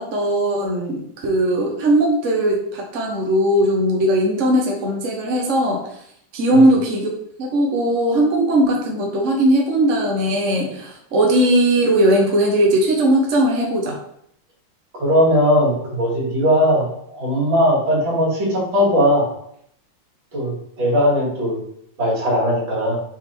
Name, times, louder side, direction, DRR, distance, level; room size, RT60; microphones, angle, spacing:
voice 1, 0.0-6.0 6.3-7.1 7.4-14.0, right 1 dB, 45° right, 0 dB, 1.2 m, -18 dB
voice 2, 14.9-19.3 20.3-21.6 22.0-23.0, equal, 70° right, -5 dB, 3.2 m, -18 dB
6.1 x 4.2 x 4.4 m, 0.70 s
omnidirectional pair, 2.2 m